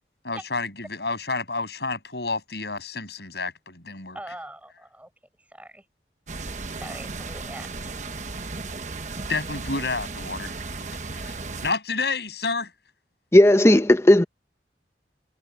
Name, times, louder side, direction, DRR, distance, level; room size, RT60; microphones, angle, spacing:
voice 1, 0.2-4.4 9.3-10.5 11.1-11.4 11.6-12.7 13.7-13.8, left 3 dB, 65° left, 7.6 m, -30 dB
voice 2, 4.1-5.1 5.5-5.8 6.7-8.3, right 1 dB, 10° right, 6.5 m, -42 dB
sound 1, 6.3-11.7, right 3 dB, 40° right, 1.1 m, -35 dB
voice 3, 13.3-14.2, left 1 dB, 15° left, 0.8 m, -14 dB
head